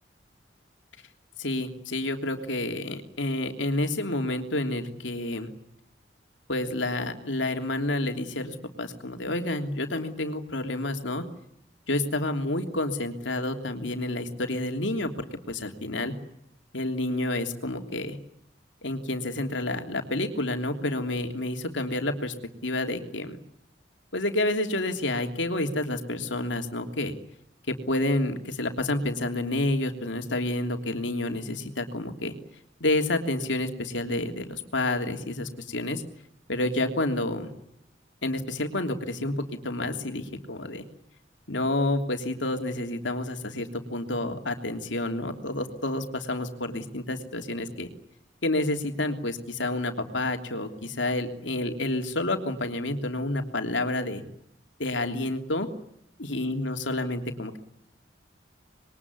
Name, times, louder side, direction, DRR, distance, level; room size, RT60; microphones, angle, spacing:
voice 1, 1.4-5.5 6.5-11.2 11.9-16.2 16.7-18.2 18.8-22.3 22.6-23.4 24.1-27.1 27.7-32.3 32.8-36.0 36.5-37.5 38.2-40.8 41.5-47.9 48.4-54.2 54.8-55.7 56.2-57.6, left 2 dB, 85° left, 6 dB, 3.2 m, -29 dB
27.0 x 22.0 x 9.7 m, 0.80 s
head